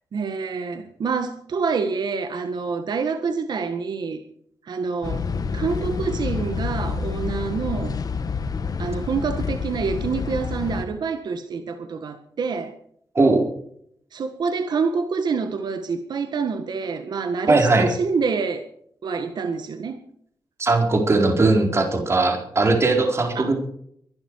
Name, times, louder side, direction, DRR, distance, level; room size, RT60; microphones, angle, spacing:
voice 1, 0.1-4.2 4.7-5.3 5.5-8.0 8.8-12.7 14.1-18.6 19.0-20.0 23.3-23.5, right 5 dB, 65° right, 1.7 m, -27 dB
sound 1, 5.0-10.8, left 5 dB, 55° left, 1.9 m, -28 dB
voice 2, 17.5-17.9 20.6-23.5, right 3 dB, 35° right, 4.2 m, -19 dB
23.0 x 12.0 x 4.8 m
cardioid pair, 100°, 8 cm